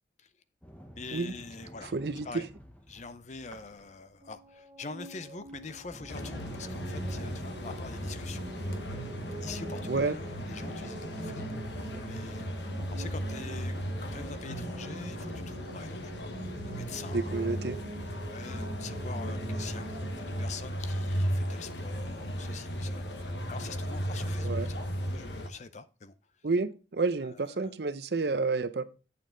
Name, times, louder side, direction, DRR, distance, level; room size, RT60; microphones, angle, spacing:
Sliding door, 0.6-4.4 5.1-14.6, equal, 10° left, 1.0 m, -49 dB
voice 1, 1.0-1.9 2.2-2.5 2.9-8.4 9.4-17.5 18.2-23.0 23.5-24.8 25.1-26.1 27.2-27.7, left 4 dB, 40° left, 0.6 m, -45 dB
voice 2, 1.8-2.3 9.9-10.2 17.1-17.8 24.4-24.7 26.4-28.8, right 3 dB, 65° right, 0.6 m, -30 dB
sound 1, 4.2-20.4, right 1 dB, 25° right, 0.9 m, -45 dB
sound 2, 6.1-25.5, equal, 75° left, 1.2 m, -36 dB
8.5 x 7.0 x 3.8 m
head